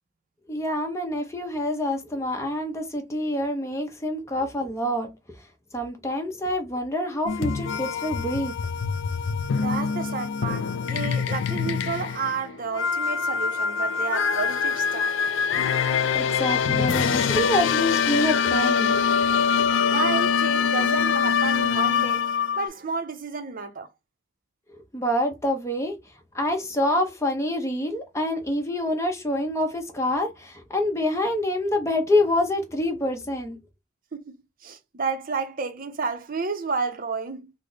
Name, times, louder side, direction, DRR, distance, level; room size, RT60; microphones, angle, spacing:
voice 1, 0.5-5.1 5.7-8.5 16.1-19.0 19.8-19.9 24.9-25.9 26.3-33.6, left 1 dB, 15° left, 0.7 m, -26 dB
sound 1, 7.3-22.7, left 6 dB, 70° left, 0.3 m, -24 dB
voice 2, 9.6-15.1 19.9-22.2 22.5-23.9 34.1-34.4 34.6-37.5, right 5 dB, 45° right, 0.6 m, -31 dB
3.2 x 2.0 x 3.8 m
head